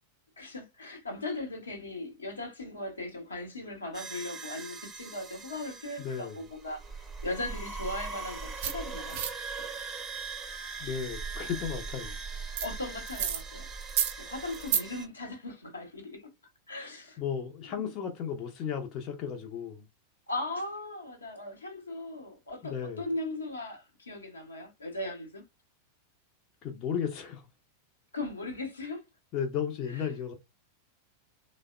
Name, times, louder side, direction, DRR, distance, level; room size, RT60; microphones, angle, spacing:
voice 1, 0.4-6.8 7.2-9.2 9.6-9.7 12.6-13.7 14.2-16.3 16.7-17.2 17.8-17.9 20.3-25.4 28.1-29.0 29.9-30.2, left 2 dB, 75° left, 0.9 m, -38 dB
sound 1, 3.9-15.1, right 4 dB, 20° right, 0.7 m, -40 dB
voice 2, 6.0-6.4 10.8-12.2 17.2-19.8 22.6-23.0 26.6-27.4 29.3-30.3, left 7 dB, 35° left, 0.6 m, -34 dB
sound 2, 8.6-8.7 9.1-9.3 12.6-12.7 13.1-13.4 13.8-14.1 14.5-14.8, right 9 dB, 55° right, 0.5 m, -29 dB
3.3 x 2.0 x 2.3 m
figure-of-eight pair, 90°, 0 cm